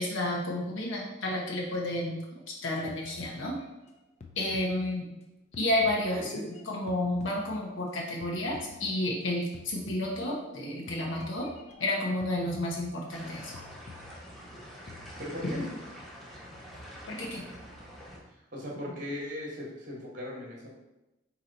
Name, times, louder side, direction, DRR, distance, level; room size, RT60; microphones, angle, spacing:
voice 1, 0.0-2.2 2.6-3.5 4.4-5.1 5.6-11.5 11.8-13.5 17.1-17.4, left 1 dB, 80° left, -2 dB, 0.9 m, -31 dB
sound 1, 2.9-5.2 5.5-7.9 8.2-9.3 9.5-10.6 10.9-13.2 13.5-15.2, left 3 dB, 35° left, 0.5 m, -50 dB
sound 2, 13.1-18.2, equal, ahead, 0.8 m, -46 dB
voice 2, 15.2-15.7 18.5-20.7, left 1 dB, 45° right, -2 dB, 1.0 m, -38 dB
4.1 x 2.9 x 3.9 m, 0.96 s
head